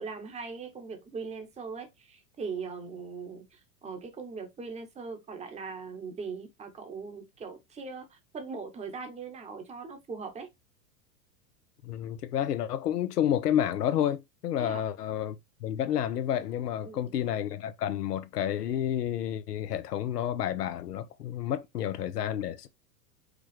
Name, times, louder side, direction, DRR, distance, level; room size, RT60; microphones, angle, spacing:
voice 1, 0.0-10.5 14.6-14.8 16.8-17.2, right 5 dB, 15° right, 0.9 m, -40 dB
voice 2, 11.8-15.4 15.6-22.7, left 10 dB, 85° left, 0.7 m, -30 dB
4.9 x 2.4 x 3.1 m
hypercardioid pair, 100°, 46 cm